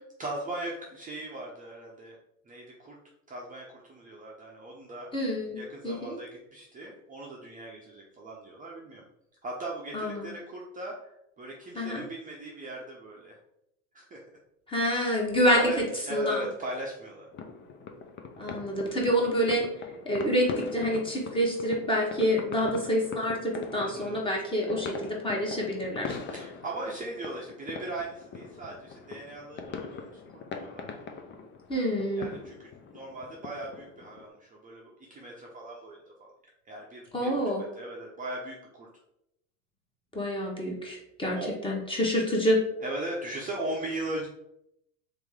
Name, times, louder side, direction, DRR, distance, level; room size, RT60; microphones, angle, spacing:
voice 1, 0.2-2.2 2.5-3.0 3.3-9.0 9.4-13.4 13.9-14.2 15.5-17.3 23.8-24.2 26.3-30.9 32.1-36.3 36.7-38.9 41.3-41.5 42.8-44.3, right 1 dB, 20° right, -3 dB, 0.7 m, -39 dB
voice 2, 5.1-5.6 5.8-6.2 9.9-10.3 11.7-12.0 14.7-15.7 16.1-16.5 18.4-19.7 20.0-26.2 31.7-32.3 37.1-37.6 40.1-42.6, equal, 15° left, -2 dB, 1.2 m, -27 dB
sound 1, 17.3-34.3, left 5 dB, 30° left, 0.5 m, -42 dB
3.3 x 3.0 x 3.6 m, 0.79 s
hypercardioid pair, 95°, 40 cm